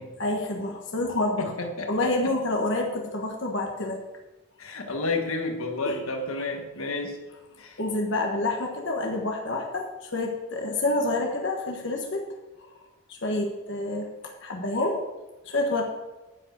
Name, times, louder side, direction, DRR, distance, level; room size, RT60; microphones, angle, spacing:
voice 1, 0.2-1.5 1.9-4.0 5.8-6.0 7.8-12.3 13.1-15.0 15.4-15.8, left 2 dB, 55° left, 1 dB, 1.2 m, -28 dB
voice 2, 1.4-2.3 4.6-7.2 7.6-7.8, left 3 dB, 85° left, 4 dB, 1.5 m, -31 dB
10.5 x 5.0 x 8.0 m, 1.1 s
head